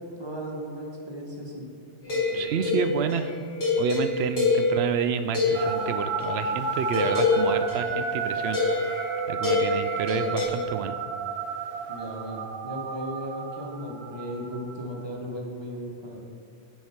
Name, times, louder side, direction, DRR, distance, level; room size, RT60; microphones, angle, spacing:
voice 1, 0.2-1.6 2.1-2.5 11.9-16.2, equal, 20° right, -2 dB, 1.2 m, -36 dB
sound 1, 2.0-6.4 6.9-10.4, left 3 dB, 45° left, 2.5 m, -26 dB
voice 2, 2.3-3.3 3.8-8.6 9.3-11.0, right 7 dB, 65° right, 10 dB, 0.7 m, -29 dB
sound 2, 5.5-15.0, right 5 dB, 85° right, 1.2 m, -32 dB
9.2 x 4.6 x 5.8 m, 2.2 s
omnidirectional pair, 1.3 m